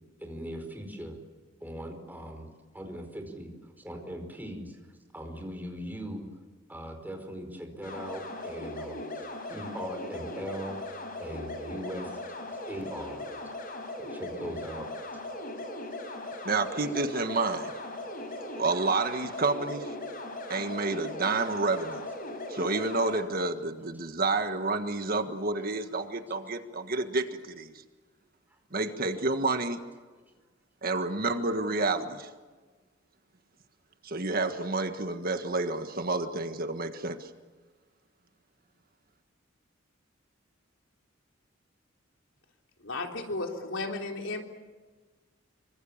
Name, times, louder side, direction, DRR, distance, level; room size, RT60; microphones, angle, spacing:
voice 1, 0.2-1.1 1.6-2.5 2.7-3.5 3.8-4.8 5.1-6.3 6.7-9.0 9.5-10.8 11.2-12.1 12.7-13.2 14.1-14.9, equal, 10° right, 4 dB, 4.9 m, -39 dB
sound 1, 7.8-23.2, left 1 dB, 45° left, 5.1 m, -39 dB
voice 2, 16.4-17.7 18.6-19.9 20.5-22.1 22.5-27.7 28.7-29.8 30.8-32.3 34.0-37.3, right 3 dB, 50° right, 7 dB, 1.6 m, -29 dB
voice 3, 42.8-44.4, left 2 dB, 85° left, 2 dB, 3.7 m, -34 dB
26.5 x 25.0 x 7.4 m, 1.3 s
head